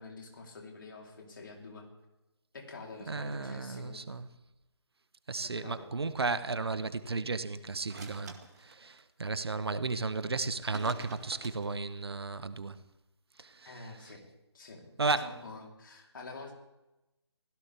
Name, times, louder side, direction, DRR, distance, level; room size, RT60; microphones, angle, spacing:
voice 1, 0.0-1.9 2.5-4.2 5.6-5.9 13.6-14.2 14.5-16.5, left 3 dB, 45° left, 3.6 m, -47 dB
voice 2, 3.1-4.3 5.3-12.8 13.4-13.7 15.0-15.3, right 3 dB, 60° right, 1.0 m, -34 dB
sound 1, 7.8-9.0 10.7-11.8, right 4 dB, 35° right, 1.9 m, -48 dB
24.0 x 16.5 x 3.5 m
figure-of-eight pair, 150°, 15 cm